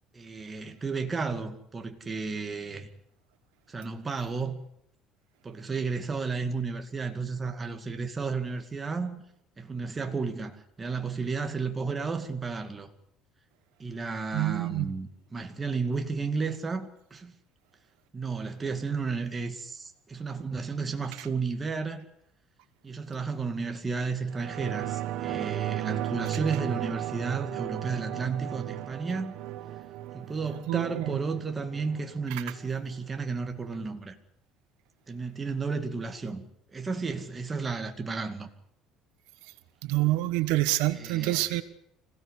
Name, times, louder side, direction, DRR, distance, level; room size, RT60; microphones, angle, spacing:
voice 1, 0.1-2.9 3.7-4.6 5.4-9.2 9.6-12.9 13.8-17.3 18.1-22.0 22.8-29.3 30.1-34.1 35.1-36.4 36.7-38.5 40.9-41.6, right 4 dB, 15° right, 2.3 m, -33 dB
voice 2, 14.3-14.9 30.7-31.0 39.9-41.6, right 18 dB, 90° right, 1.4 m, -26 dB
sound 1, 24.3-33.3 33.7-33.8, right 13 dB, 65° right, 1.3 m, -35 dB
26.0 x 17.0 x 8.4 m
cardioid pair, 150°, 0 cm